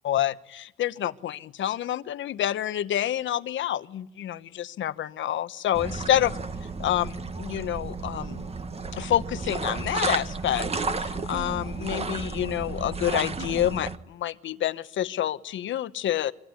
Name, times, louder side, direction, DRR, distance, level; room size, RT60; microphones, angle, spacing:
voice 1, 0.0-6.3 6.8-8.5 8.9-16.3, left 11 dB, 70° left, 12 dB, 1.2 m, -28 dB
sound 1, 5.7-14.0, right 4 dB, 30° right, 1.8 m, -32 dB
25.5 x 24.0 x 9.8 m, 0.78 s
cardioid pair, 90°, 20 cm